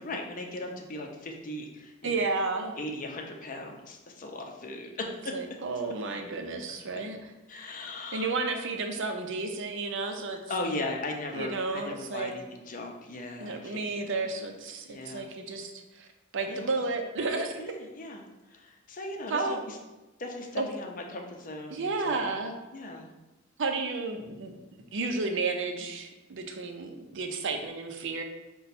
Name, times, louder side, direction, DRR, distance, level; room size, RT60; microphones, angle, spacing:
voice 1, 0.0-2.2 2.8-5.4 7.5-8.3 10.5-14.2 14.9-15.3 16.5-16.7 17.6-19.8 20.2-22.4 22.7-23.1, left 2 dB, 40° left, 2 dB, 0.6 m, -38 dB
voice 2, 2.0-2.8 5.3-7.2 8.1-10.4 11.3-12.3 13.4-16.1 16.3-17.6 19.3-19.6 20.6-20.7 21.7-22.6 23.6-24.6 24.9-28.2, right 3 dB, 65° right, 4 dB, 0.6 m, -32 dB
5.4 x 2.3 x 4.1 m, 1.1 s
head